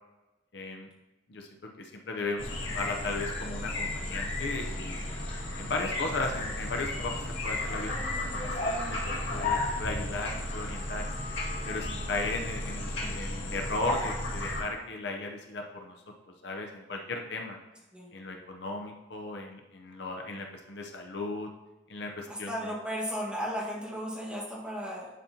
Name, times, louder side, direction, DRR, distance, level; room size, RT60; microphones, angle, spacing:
voice 1, 0.5-0.9 1.3-1.5 1.8-2.5 2.7-5.0 5.6-8.0 8.3-11.1 11.7-15.9 16.4-17.6 18.1-21.5 21.9-22.7, left 2 dB, 60° left, 2 dB, 0.7 m, -36 dB
sound 1, 2.4-14.6, left 2 dB, 85° left, 2.0 m, -33 dB
voice 2, 22.3-25.1, equal, 5° right, -5 dB, 1.6 m, -35 dB
10.5 x 4.2 x 2.8 m, 1.1 s
head